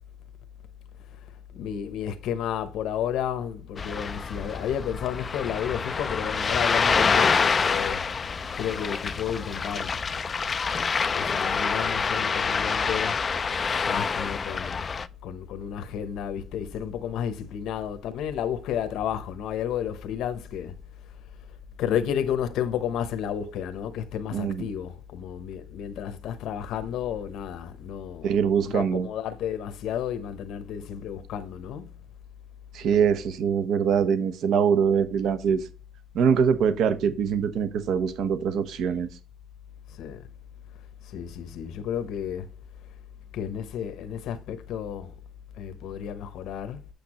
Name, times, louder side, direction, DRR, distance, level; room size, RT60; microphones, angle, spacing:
voice 1, 1.1-8.0 8.6-10.0 11.1-13.2 13.8-14.9 15.2-20.8 21.8-28.3 28.6-31.9 39.9-40.3 41.0-42.5 43.3-45.1 45.6-46.8, left 9 dB, 65° left, 0.8 m, -32 dB
Ocean, 3.8-15.1, left 5 dB, 25° left, 0.3 m, -26 dB
voice 2, 24.3-24.7 28.2-29.1 32.7-35.6 36.1-39.1, right 7 dB, 60° right, 0.9 m, -23 dB
8.0 x 6.8 x 3.0 m
cardioid pair, 170°, 0 cm